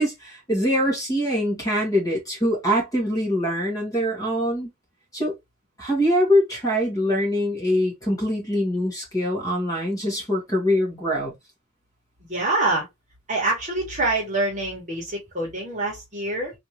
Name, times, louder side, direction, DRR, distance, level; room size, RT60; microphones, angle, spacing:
voice 1, 0.0-4.7 5.1-5.3 5.8-11.3, equal, 15° left, 1.6 m, -23 dB
voice 2, 12.3-12.9 13.3-16.5, right 2 dB, 30° right, 1.4 m, -25 dB
3.4 x 2.8 x 3.1 m
head